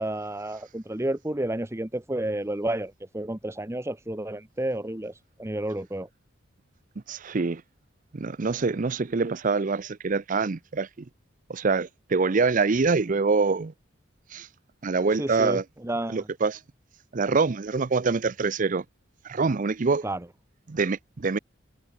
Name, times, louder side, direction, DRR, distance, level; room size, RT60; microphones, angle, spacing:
voice 1, 0.0-6.1 15.2-16.3 20.0-20.2, right 1 dB, 15° right, 0.9 m, -31 dB
voice 2, 7.1-7.6 8.1-10.9 11.5-13.7 14.3-14.5 14.8-15.6 16.1-16.6 17.1-18.8 19.2-20.0 20.7-21.4, right 4 dB, 40° right, 0.5 m, -25 dB
head